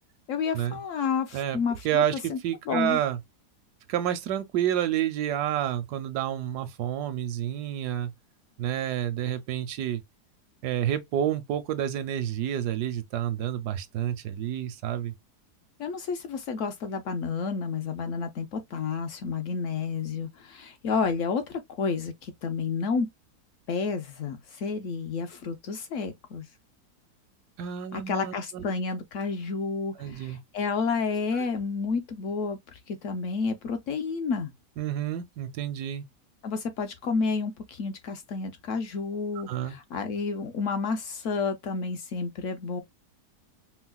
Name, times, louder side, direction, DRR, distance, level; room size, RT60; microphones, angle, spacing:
voice 1, 0.3-2.0 2.3-2.4 2.7-3.0 15.8-23.1 23.7-26.5 27.9-32.6 32.9-34.5 36.4-42.8, left 5 dB, 65° left, 0.9 m, -30 dB
voice 2, 1.8-3.2 3.9-8.1 8.6-10.0 10.6-15.1 27.6-28.6 30.0-30.4 31.3-31.5 34.8-36.0 39.5-39.8, right 11 dB, 80° right, 1.1 m, -29 dB
4.5 x 2.0 x 2.2 m
omnidirectional pair, 1.7 m